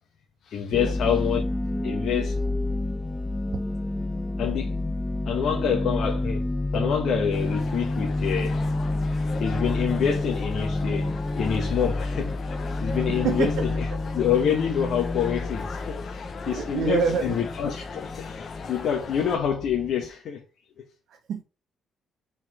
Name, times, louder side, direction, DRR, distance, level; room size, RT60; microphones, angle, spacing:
voice 1, 0.5-1.4 1.8-2.4 4.4-4.8 5.3-6.5 6.7-8.6 9.4-12.3 12.8-13.5 14.1-20.4, left 8 dB, 70° left, 1.1 m, -27 dB
sound 1, 0.7-20.1, left 2 dB, 15° left, 1.0 m, -29 dB
sound 2, 7.3-19.4, left 4 dB, 50° left, 1.0 m, -39 dB
voice 2, 12.9-14.0 16.5-17.4 21.1-21.4, right 6 dB, 70° right, 1.0 m, -28 dB
4.8 x 4.2 x 5.5 m
cardioid pair, 90°, 0 cm